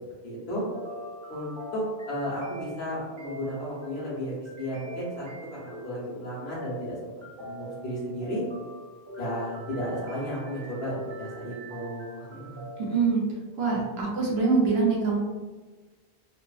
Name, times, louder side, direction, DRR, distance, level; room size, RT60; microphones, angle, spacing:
voice 1, 0.2-0.6 1.3-5.3 5.5-7.0 7.4-8.4 9.2-12.6 12.9-13.0 13.7-13.8, equal, 85° left, -8 dB, 1.1 m, -34 dB
sound 1, 0.7-13.1, right 1 dB, 35° right, 0.5 m, -43 dB
voice 2, 12.8-13.2 13.6-15.2, right 4 dB, 75° right, -2 dB, 0.9 m, -24 dB
3.1 x 2.0 x 2.3 m, 1.3 s
omnidirectional pair, 1.0 m